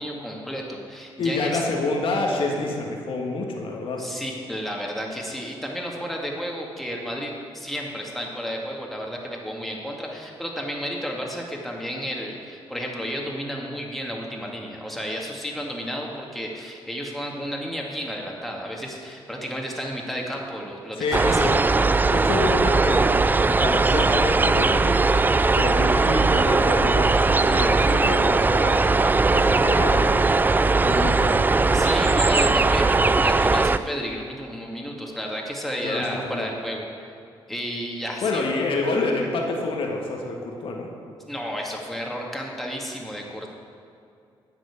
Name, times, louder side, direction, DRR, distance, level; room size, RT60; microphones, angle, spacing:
voice 1, 0.0-1.6 4.0-21.5 31.7-32.9 33.2-37.1 37.5-38.6 41.3-43.5, equal, ahead, -1 dB, 2.3 m, -32 dB
voice 2, 1.2-4.1 21.0-21.6 22.1-23.1 23.5-25.0 25.5-28.8 29.3-30.4 30.8-31.3 35.8-36.5 38.2-40.9, left 3 dB, 70° left, 1 dB, 1.6 m, -27 dB
sound 1, 21.1-33.8, right 3 dB, 20° right, 0.4 m, -19 dB
10.0 x 6.2 x 8.8 m, 2.5 s
cardioid pair, 75°, 9 cm